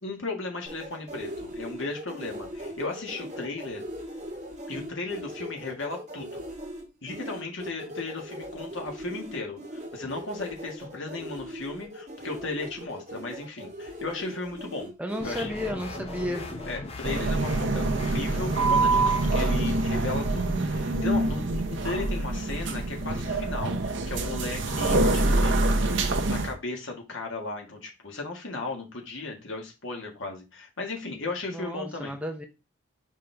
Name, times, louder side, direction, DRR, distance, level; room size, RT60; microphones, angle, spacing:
voice 1, 0.0-3.8 4.7-6.4 7.0-14.9 15.2-15.5 16.7-32.2, left 3 dB, 65° left, 2 dB, 1.8 m, -36 dB
sound 1, 0.7-16.7, equal, 35° right, 1.7 m, -40 dB
voice 2, 15.0-16.5 31.5-32.5, equal, 5° right, 4 dB, 0.6 m, -33 dB
sound 2, 15.2-19.6, left 2 dB, 30° left, 0.7 m, -39 dB
sound 3, 17.0-26.5, right 2 dB, 60° right, 0.8 m, -25 dB
5.5 x 5.3 x 3.4 m, 0.27 s
head